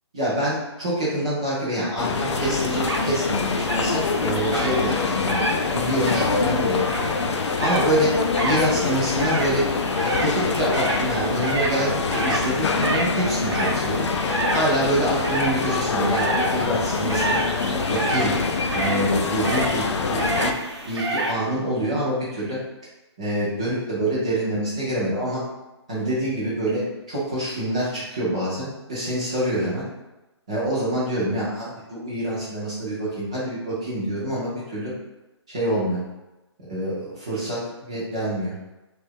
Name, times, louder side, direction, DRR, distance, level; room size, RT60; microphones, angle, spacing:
voice 1, 0.1-5.4 5.7-7.1 7.6-8.1 8.4-9.6 10.0-17.4 17.9-18.4 18.7-20.5 20.8-22.6 23.2-25.4 25.9-29.9 30.5-34.9 35.5-36.0 36.6-36.9 37.3-38.5, right 1 dB, 15° right, -8 dB, 0.4 m, -26 dB
sound 1, 2.0-20.5, left 4 dB, 80° left, 0.4 m, -25 dB
sound 2, 2.3-21.3, right 1 dB, 65° right, 0.7 m, -30 dB
3.0 x 2.3 x 3.3 m, 1.0 s
hypercardioid pair, 175°, 15 cm